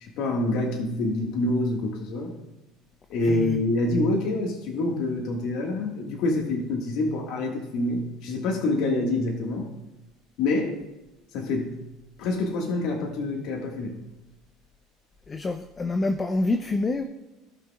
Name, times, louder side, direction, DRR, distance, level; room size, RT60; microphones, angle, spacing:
voice 1, 0.0-2.3 3.1-9.7 10.4-10.8 11.3-11.7 12.2-14.0, left 2 dB, 65° left, 0 dB, 1.6 m, -26 dB
voice 2, 3.3-3.6 15.3-17.0, left 2 dB, 25° left, 7 dB, 0.6 m, -27 dB
16.5 x 6.2 x 2.3 m, 1.0 s
supercardioid pair, 120°, 0 cm